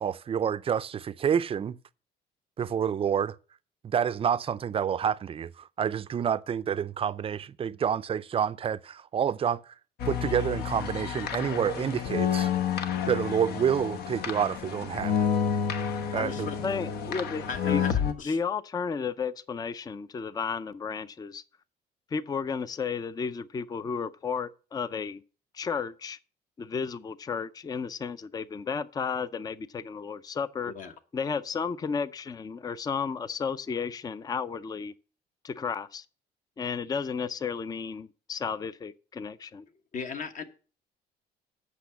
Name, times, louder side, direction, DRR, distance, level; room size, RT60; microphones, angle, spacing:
voice 1, 0.0-1.8 2.6-3.4 3.8-9.6 10.1-12.5 13.1-15.3 16.1-16.5, right 8 dB, 35° right, 0.5 m, -28 dB
sound 1, 10.0-18.1, left 8 dB, 70° left, 1.1 m, -30 dB
voice 2, 16.0-16.8 17.5-18.4 30.7-30.9 39.9-40.4, left 6 dB, 50° left, 1.3 m, -37 dB
voice 3, 16.6-17.8 18.3-21.4 22.1-25.2 25.5-26.2 26.6-30.7 31.1-34.9 35.4-36.0 36.6-39.6, left 5 dB, 25° left, 0.5 m, -33 dB
8.2 x 5.9 x 7.1 m
cardioid pair, 110°, 17 cm